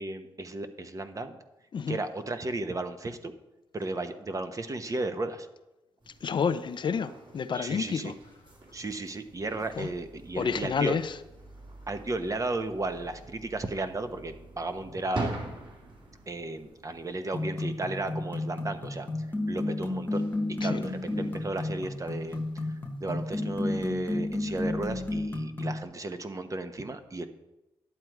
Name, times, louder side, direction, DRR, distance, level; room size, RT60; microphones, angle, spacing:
voice 1, 0.0-1.4 1.9-3.3 3.7-5.5 7.5-8.1 8.7-11.0 11.9-15.4 16.3-19.1 19.5-22.4 23.0-27.3, right 2 dB, 35° right, 1.0 m, -34 dB
sound 1, 6.0-25.2, right 2 dB, 55° right, 3.5 m, -46 dB
voice 2, 6.2-8.1 9.8-9.9 10.4-11.0 20.6-20.8, left 6 dB, 50° left, 0.6 m, -29 dB
sound 2, 17.3-25.8, left 2 dB, 20° left, 1.3 m, -32 dB
11.0 x 7.7 x 4.7 m
cardioid pair, 65°, 10 cm